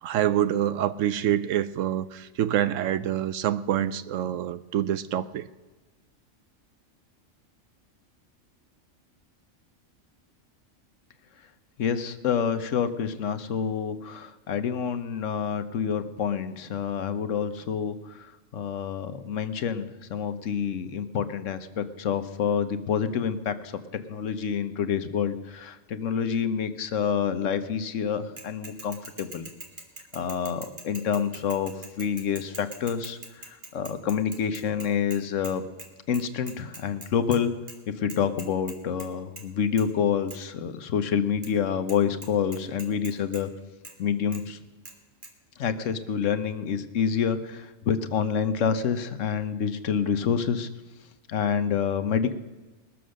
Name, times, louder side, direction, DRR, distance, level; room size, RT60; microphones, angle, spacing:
voice 1, 0.0-5.5, right 11 dB, 75° right, 14 dB, 0.9 m, -26 dB
voice 2, 11.8-18.3 18.5-29.5 30.1-35.7 36.1-37.5 38.0-43.5 44.0-44.6 45.6-50.7 51.3-52.3, left 7 dB, 70° left, 10 dB, 1.2 m, -28 dB
Bicycle / Mechanisms, 28.4-35.5 35.8-35.9 36.1-37.4 37.7-37.8 38.1-39.1 39.4-39.5 39.8-39.9 40.3-40.4 41.4-41.5 41.9-42.0 42.2-43.4 43.8-43.9 44.3-44.4 44.9-45.0 45.2-45.3, right 2 dB, 40° right, 1.8 m, -43 dB
20.5 x 7.0 x 6.4 m, 1.2 s
omnidirectional pair, 1.4 m